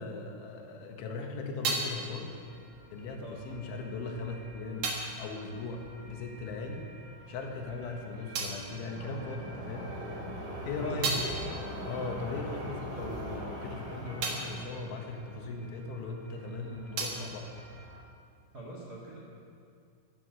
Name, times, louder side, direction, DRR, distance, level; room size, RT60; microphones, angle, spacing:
voice 1, 0.0-2.4 2.9-6.9 7.3-9.9 10.6-11.2 11.8-17.5, left 3 dB, 75° left, 2 dB, 3.8 m, -39 dB
sound 1, 0.8-6.8 7.1-9.8 10.2-16.2 16.5-18.5, right 3 dB, 60° right, 2.0 m, -40 dB
sound 2, 2.2-18.0, equal, 35° right, 2.4 m, -44 dB
voice 2, 10.6-11.2 18.5-19.2, right 3 dB, 80° right, -3 dB, 0.9 m, -41 dB
13.0 x 12.5 x 7.8 m, 2.4 s
omnidirectional pair, 5.7 m